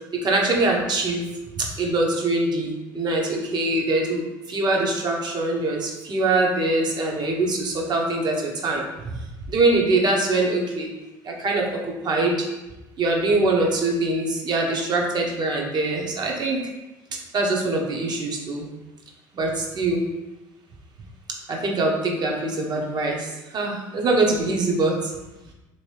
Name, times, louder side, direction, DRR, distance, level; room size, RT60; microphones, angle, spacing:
voice 1, 0.2-1.2 1.6-8.8 9.5-10.9 11.2-12.5 13.0-16.7 17.3-18.7 19.3-20.0 21.5-25.1, right 2 dB, 45° right, 0 dB, 0.9 m, -23 dB
3.2 x 3.0 x 3.1 m, 1.0 s
hypercardioid pair, 70°, 10 cm